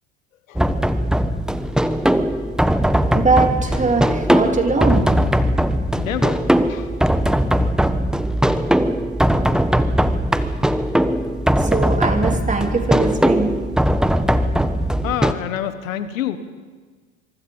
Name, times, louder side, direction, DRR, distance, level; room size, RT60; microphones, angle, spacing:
sound 1, 0.6-15.3, equal, ahead, 1.1 m, -19 dB
voice 1, 3.1-5.1 11.6-13.7, right 3 dB, 20° right, 3 dB, 3.5 m, -21 dB
voice 2, 6.0-6.4 6.7-7.1 15.0-16.4, left 10 dB, 75° left, 12 dB, 1.5 m, -27 dB
25.5 x 24.0 x 5.5 m, 1.4 s
hypercardioid pair, 75°, 40 cm